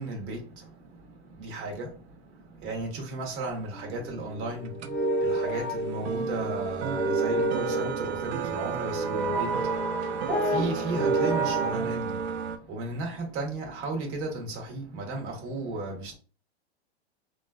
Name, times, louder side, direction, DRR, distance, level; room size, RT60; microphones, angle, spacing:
voice 1, 0.0-16.2, right 2 dB, 35° right, 1.3 m, -35 dB
sound 1, 3.5-12.6, right 7 dB, 90° right, 0.5 m, -33 dB
sound 2, 3.7-11.7, right 1 dB, ahead, 1.2 m, -30 dB
3.7 x 2.5 x 2.3 m
hypercardioid pair, 140°, 32 cm